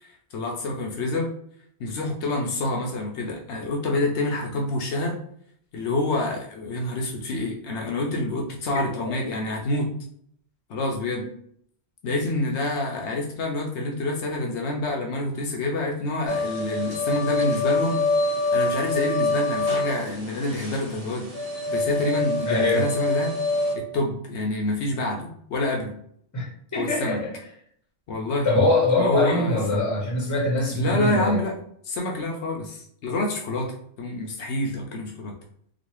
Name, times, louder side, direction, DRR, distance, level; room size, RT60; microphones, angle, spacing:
voice 1, 0.0-1.3 1.8-5.2 5.7-9.9 10.7-11.2 12.0-21.3 21.7-23.3 23.7-25.9 26.8-27.2 28.1-28.5 29.0-29.8 30.7-31.5 31.8-33.7 34.0-35.3, left 2 dB, 70° left, 0 dB, 0.8 m, -27 dB
sound 1, 16.3-23.7, left 2 dB, 35° right, 1.1 m, -25 dB
voice 2, 22.4-22.9 26.3-27.3 28.4-31.4, left 2 dB, 20° left, -3 dB, 0.7 m, -23 dB
2.9 x 2.3 x 3.0 m, 0.66 s
omnidirectional pair, 1.2 m